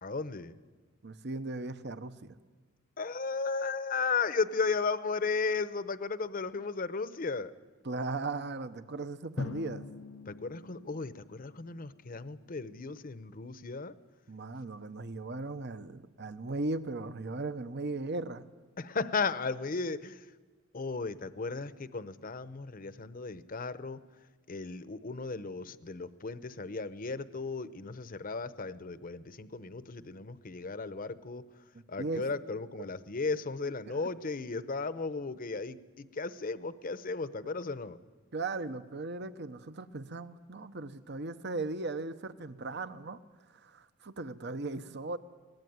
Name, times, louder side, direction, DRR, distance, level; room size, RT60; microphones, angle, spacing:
voice 1, 0.0-0.6 3.0-7.5 10.3-13.9 18.8-20.3 20.7-24.0 24.5-31.4 31.9-38.0, left 4 dB, 45° left, 14 dB, 0.8 m, -35 dB
voice 2, 1.0-2.3 7.8-9.8 14.3-18.4 32.0-32.2 33.9-34.0 38.3-43.2 43.6-45.2, right 3 dB, 60° right, 12 dB, 1.0 m, -37 dB
Drum, 9.4-12.0, left 3 dB, 75° left, 0.8 m, -42 dB
22.5 x 19.0 x 9.4 m, 1.3 s
head